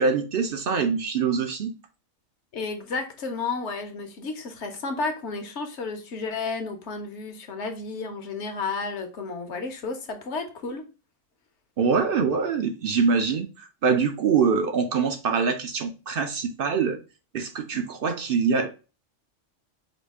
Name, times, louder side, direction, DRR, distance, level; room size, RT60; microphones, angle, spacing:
voice 1, 0.0-1.7 11.8-17.0 17.3-18.7, right 5 dB, 60° right, 0.6 m, -24 dB
voice 2, 2.5-10.9 17.7-17.8, left 4 dB, 65° left, 1.1 m, -32 dB
5.0 x 2.4 x 3.5 m
omnidirectional pair, 1.3 m